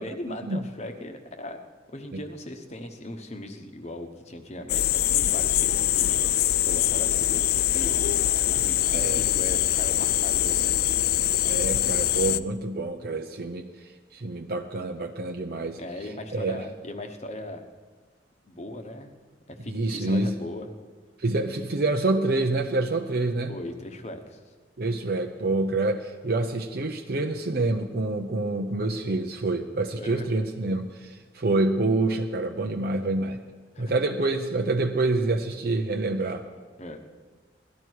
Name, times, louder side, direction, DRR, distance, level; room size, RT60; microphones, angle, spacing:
voice 1, 0.0-1.6 1.9-6.2 6.7-10.8 15.8-17.6 18.4-19.1 19.5-20.7 23.5-24.4 30.0-30.3 33.7-34.0 36.8-37.0, left 1 dB, 40° left, 6 dB, 1.1 m, -38 dB
sound 1, 4.7-12.4, left 13 dB, 55° left, 0.3 m, -23 dB
voice 2, 8.9-9.3 11.5-15.8 16.3-16.6 19.7-20.4 21.2-23.5 24.8-33.4 33.8-36.5, right 2 dB, 55° right, 4 dB, 0.7 m, -27 dB
18.0 x 12.5 x 4.7 m, 1.4 s
head